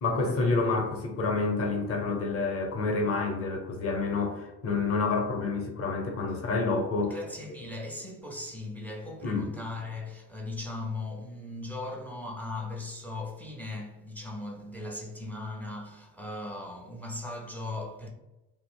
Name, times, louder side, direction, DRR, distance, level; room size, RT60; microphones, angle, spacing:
voice 1, 0.0-7.2 9.2-9.5, left 3 dB, 30° left, 0.7 m, -28 dB
voice 2, 7.1-18.1, left 2 dB, 5° left, 0.4 m, -38 dB
2.5 x 2.0 x 3.4 m
figure-of-eight pair, 55°, 47 cm